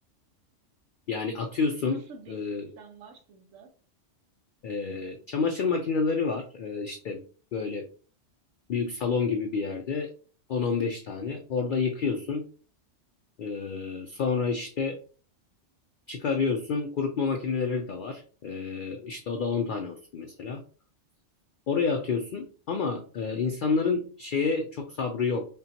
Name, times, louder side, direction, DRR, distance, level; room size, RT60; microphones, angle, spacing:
voice 1, 1.1-2.0 2.3-2.7 4.6-7.2 7.5-7.9 8.7-10.1 10.5-12.5 13.4-15.0 16.1-20.6 21.7-25.5, left 5 dB, 60° left, 4 dB, 0.5 m, -29 dB
voice 2, 1.8-3.7 21.7-22.0, right 4 dB, 85° right, 4 dB, 1.1 m, -48 dB
5.4 x 2.3 x 2.7 m, 0.41 s
omnidirectional pair, 1.3 m